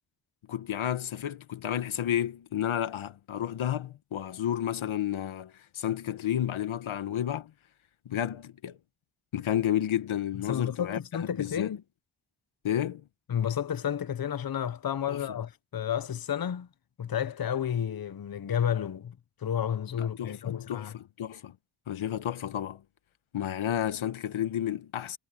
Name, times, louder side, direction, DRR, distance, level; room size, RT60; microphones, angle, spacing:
voice 1, 0.5-7.5 8.0-8.8 9.3-11.0 11.3-11.7 12.6-13.0 15.1-15.2 20.0-21.5 21.9-22.8 23.3-25.2, left 10 dB, 75° left, 1.4 m, -31 dB
voice 2, 10.5-11.8 13.3-16.7 17.0-21.0, left 9 dB, 45° left, 1.0 m, -31 dB
cardioid pair, 55°, 48 cm